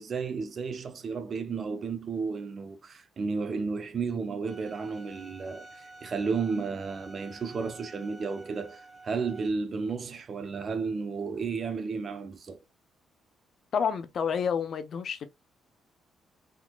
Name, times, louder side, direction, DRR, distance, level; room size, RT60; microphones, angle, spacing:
voice 1, 0.0-12.6, right 5 dB, 45° right, 0.6 m, -33 dB
Bowed string instrument, 4.5-9.5, right 2 dB, 30° right, 1.1 m, -50 dB
voice 2, 13.7-15.3, left 6 dB, 55° left, 0.6 m, -29 dB
3.7 x 2.8 x 2.2 m
cardioid pair, 90°, 0 cm